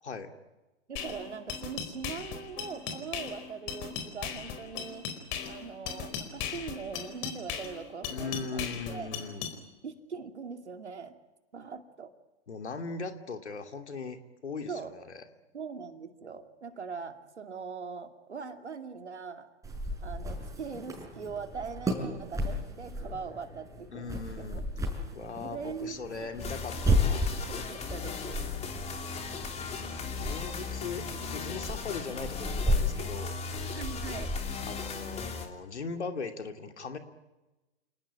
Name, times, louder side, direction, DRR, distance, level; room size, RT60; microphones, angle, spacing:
voice 1, 0.9-5.1 5.4-9.1 9.8-11.2 11.5-12.1 14.7-14.9 15.5-19.5 20.0-24.6 25.4-25.9 26.2-26.3 27.1-28.4 33.7-34.3, right 5 dB, 85° right, 6 dB, 2.6 m, -41 dB
sound 1, 1.0-9.6, left 8 dB, 35° left, 4.5 m, -38 dB
voice 2, 8.1-9.5 12.5-15.2 23.9-24.6 25.1-27.3 30.0-33.4 34.7-37.0, left 4 dB, 80° left, 6 dB, 2.8 m, -39 dB
sound 2, 19.6-34.8, equal, 10° right, 6.2 m, -34 dB
sound 3, 26.4-35.5, left 5 dB, 20° left, 3.1 m, -38 dB
28.5 x 19.5 x 8.8 m, 1.1 s
hypercardioid pair, 115°, 33 cm